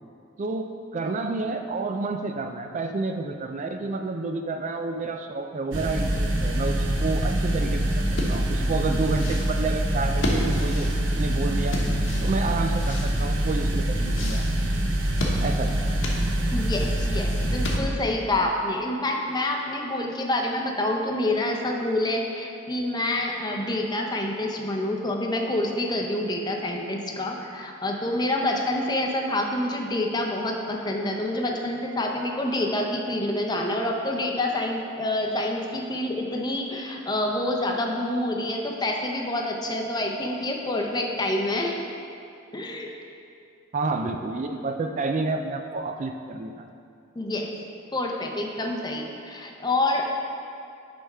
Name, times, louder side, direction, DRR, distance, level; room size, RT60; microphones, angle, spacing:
voice 1, 0.4-10.9 11.1-11.8 12.2-14.6 15.4-15.8 43.7-46.7, right 3 dB, 40° right, 6 dB, 0.3 m, -30 dB
sound 1, 5.7-17.8, right 1 dB, 65° right, 0.8 m, -25 dB
sound 2, 8.1-18.2, left 1 dB, 70° left, 1.1 m, -33 dB
voice 2, 16.5-41.8 42.5-42.9 47.1-47.5 47.9-50.0, left 1 dB, 20° left, 1 dB, 0.6 m, -27 dB
9.0 x 3.5 x 5.4 m, 2.5 s
head